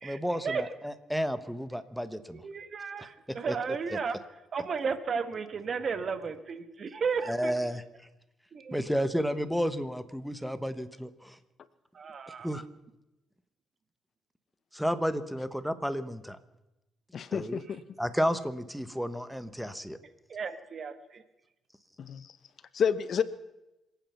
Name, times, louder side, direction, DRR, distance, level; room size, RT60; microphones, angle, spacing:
voice 1, 0.0-2.4 3.5-3.6 3.9-4.0 7.3-7.8 8.7-11.4 12.4-12.6 14.7-16.4 17.3-17.6 18.0-20.0, equal, ahead, 12 dB, 1.1 m, -32 dB
voice 2, 2.3-4.2 4.5-7.5 8.5-8.9 11.9-12.5 20.3-21.2, right 5 dB, 50° right, 11 dB, 1.4 m, -34 dB
voice 3, 17.1-17.8 22.0-22.3 22.7-23.2, left 7 dB, 55° left, 15 dB, 0.8 m, -29 dB
27.0 x 9.1 x 5.7 m, 0.96 s
cardioid pair, 90°, 0 cm